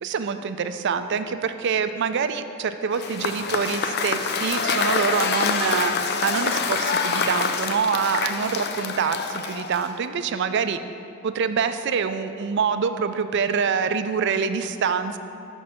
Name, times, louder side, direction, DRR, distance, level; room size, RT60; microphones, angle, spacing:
voice 1, 0.0-5.9 6.2-10.8 11.2-15.2, right 6 dB, 55° right, 10 dB, 0.4 m, -25 dB
Cheering / Applause / Crowd, 2.9-10.0, left 5 dB, 50° left, 0.4 m, -26 dB
6.5 x 5.3 x 6.9 m, 2.7 s
head